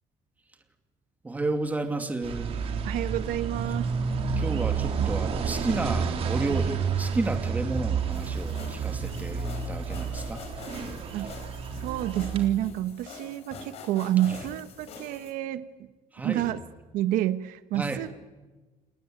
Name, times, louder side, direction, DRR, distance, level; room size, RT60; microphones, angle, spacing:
voice 1, 1.2-2.6 4.4-10.4 11.1-11.2 14.3-14.4 16.1-16.4 17.7-18.1, right 2 dB, 10° right, 6 dB, 2.6 m, -32 dB
sound 1, 2.2-12.5, right 6 dB, 45° right, 3.8 m, -30 dB
voice 2, 2.8-3.9 11.1-11.3 11.8-15.9 16.2-16.6 16.9-18.3, right 13 dB, 80° right, 11 dB, 1.3 m, -29 dB
sound 2, 8.1-15.3, left 5 dB, 45° left, 5.0 m, -45 dB
29.5 x 19.5 x 9.0 m, 1.2 s
cardioid pair, 170°, 14 cm